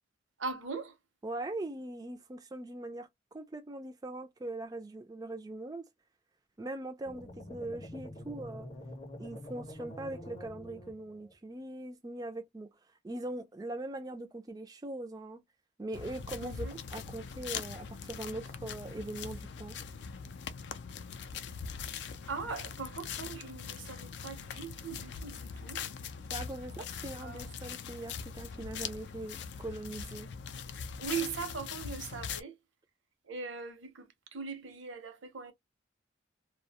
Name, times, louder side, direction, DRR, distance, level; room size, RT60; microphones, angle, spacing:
voice 1, 0.4-0.9 16.4-16.8 22.3-25.8 27.2-27.5 31.0-32.5 33.3-35.5, right 5 dB, 80° right, 0.8 m, -40 dB
voice 2, 1.2-5.9 6.6-8.7 9.2-12.7 13.0-15.4 15.8-19.8 26.3-30.3, right 2 dB, 20° right, 0.3 m, -41 dB
sound 1, 7.0-11.3, left 1 dB, 30° left, 0.7 m, -46 dB
sound 2, 15.9-32.4, left 6 dB, 60° left, 0.3 m, -42 dB
2.3 x 2.1 x 2.7 m
head